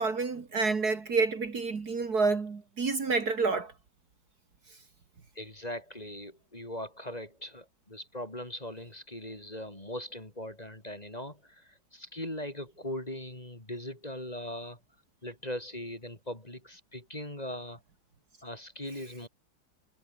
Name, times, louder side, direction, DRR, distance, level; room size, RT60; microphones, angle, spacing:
voice 1, 0.0-3.7, right 4 dB, 50° right, 2.7 m, -28 dB
voice 2, 5.4-14.8 15.2-17.8 18.4-19.3, left 1 dB, 20° left, 3.9 m, -40 dB
omnidirectional pair, 2.2 m